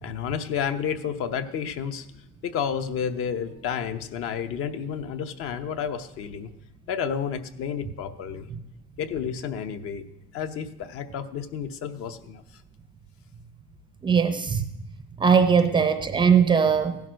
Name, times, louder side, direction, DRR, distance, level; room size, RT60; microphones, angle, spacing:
voice 1, 0.0-2.1 2.4-6.5 6.9-8.5 9.0-10.0 10.3-12.4, left 7 dB, 45° left, 10 dB, 0.9 m, -31 dB
voice 2, 14.0-14.6 15.2-17.0, right 6 dB, 15° right, 9 dB, 0.6 m, -20 dB
16.0 x 11.0 x 6.4 m, 0.84 s
cardioid pair, 175°, 31 cm